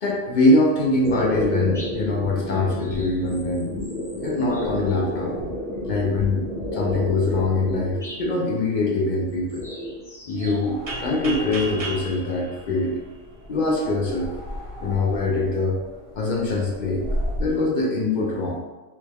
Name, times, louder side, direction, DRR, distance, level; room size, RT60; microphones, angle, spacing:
voice 1, 0.0-3.8 4.2-5.4 5.9-9.7 10.3-13.0 13.5-14.3 14.8-15.8 16.2-17.0 17.4-18.6, left 2 dB, 55° left, -2 dB, 0.5 m, -23 dB
sound 1, 1.0-8.2 9.2-10.6 10.8-11.8, equal, 5° left, 0.7 m, -30 dB
sound 2, 10.3-17.6, equal, 70° right, 1.1 m, -35 dB
sound 3, 10.9-13.6, right 2 dB, 50° right, 0.4 m, -34 dB
3.3 x 2.2 x 3.3 m, 1.2 s
omnidirectional pair, 1.3 m